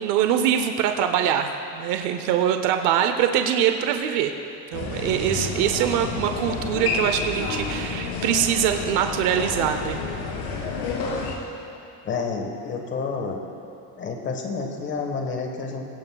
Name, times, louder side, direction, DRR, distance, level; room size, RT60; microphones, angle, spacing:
voice 1, 0.0-4.3 4.7-10.0, right 9 dB, 45° right, 6 dB, 0.6 m, -23 dB
sound 1, 4.7-11.4, left 4 dB, 80° left, 2.9 m, -29 dB
voice 2, 12.0-13.4 14.0-15.9, left 4 dB, 25° left, 3 dB, 1.3 m, -29 dB
20.5 x 17.0 x 2.3 m, 2.8 s
cardioid pair, 175°, 44 cm